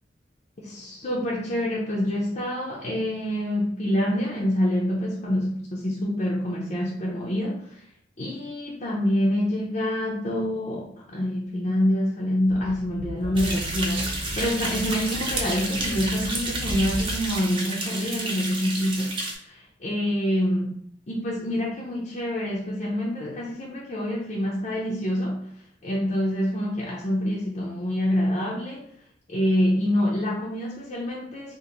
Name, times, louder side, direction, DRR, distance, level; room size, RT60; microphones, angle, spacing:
voice 1, 0.6-7.8 8.2-19.1 19.4-20.8 21.1-25.5 25.8-28.8 29.3-31.6, equal, 40° left, -4 dB, 0.5 m, -26 dB
Speech / Wind, 12.5-17.4, equal, 70° left, 0.8 m, -35 dB
sound 1, 13.4-19.3, right 2 dB, 30° right, 0.6 m, -31 dB
2.9 x 2.5 x 3.8 m, 0.64 s
head